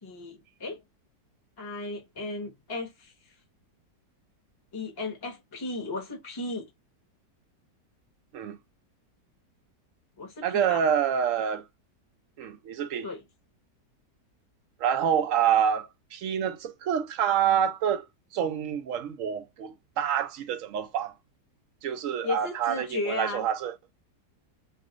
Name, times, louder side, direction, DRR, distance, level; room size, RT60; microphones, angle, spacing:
voice 1, 0.0-0.8 1.6-3.1 4.7-6.7 10.2-10.8 13.0-13.2 22.2-23.5, left 3 dB, 25° left, 0.6 m, -35 dB
voice 2, 10.4-11.6 12.4-13.1 14.8-18.1 18.3-21.2 21.8-23.7, right 8 dB, 75° right, 0.7 m, -27 dB
2.6 x 2.4 x 3.7 m
omnidirectional pair, 1.8 m